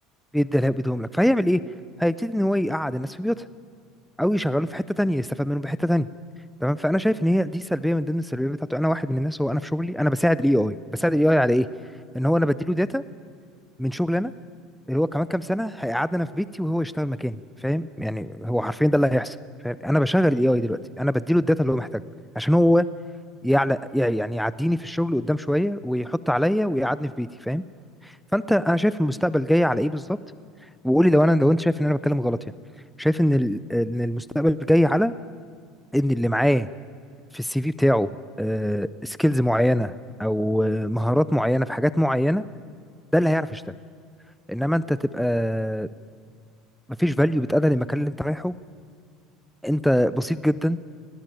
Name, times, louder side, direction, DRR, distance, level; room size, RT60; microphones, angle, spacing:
voice 1, 0.3-1.6 2.0-3.5 4.2-6.1 6.6-11.7 12.1-13.0 13.8-14.3 14.9-19.4 19.6-22.0 22.4-22.9 23.4-27.6 28.0-30.2 30.8-32.4 33.0-35.1 35.9-36.7 37.3-38.1 38.4-39.9 40.2-42.4 43.1-43.6 44.5-45.9 47.0-48.5 49.6-50.8, equal, ahead, 16 dB, 0.4 m, -22 dB
19.0 x 18.0 x 9.1 m, 2.3 s
supercardioid pair, 130°, 0 cm